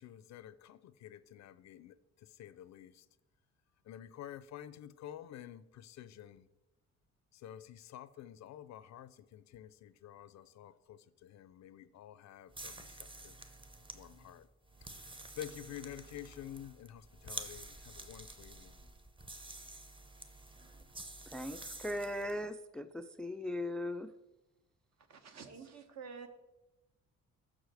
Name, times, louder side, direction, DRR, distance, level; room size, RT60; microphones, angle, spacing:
voice 1, 0.0-3.1 3.8-6.5 7.3-13.4 13.9-14.5 14.8-15.1 15.4-18.9, left 11 dB, 65° left, 15 dB, 0.5 m, -50 dB
sound 1, 12.5-22.4, right 2 dB, 15° right, 0.8 m, -49 dB
voice 2, 21.3-24.1, left 1 dB, 5° left, 11 dB, 0.3 m, -39 dB
voice 3, 25.1-26.3, right 5 dB, 60° right, 7 dB, 1.1 m, -49 dB
6.3 x 4.8 x 6.4 m, 1.0 s
cardioid pair, 90°, 30 cm